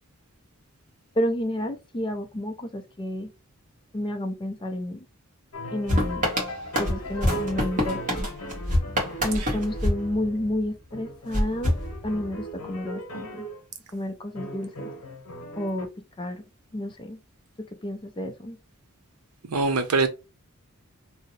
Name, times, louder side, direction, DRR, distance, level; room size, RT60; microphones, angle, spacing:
voice 1, 1.1-3.3 3.9-5.1 5.7-6.3 6.8-8.3 9.2-13.5 13.9-14.9 15.6-15.9 16.2-16.4 16.7-17.2 17.6-18.6, left 1 dB, 20° left, 0.4 m, -30 dB
sound 1, 5.5-10.6 10.9-13.6 14.4-15.9, equal, 80° left, 0.9 m, -38 dB
sound 2, 5.9-10.7 11.3-12.5, left 1 dB, 35° right, 1.1 m, -27 dB
voice 2, 19.4-20.1, right 3 dB, 80° right, 0.6 m, -23 dB
2.7 x 2.0 x 3.9 m
head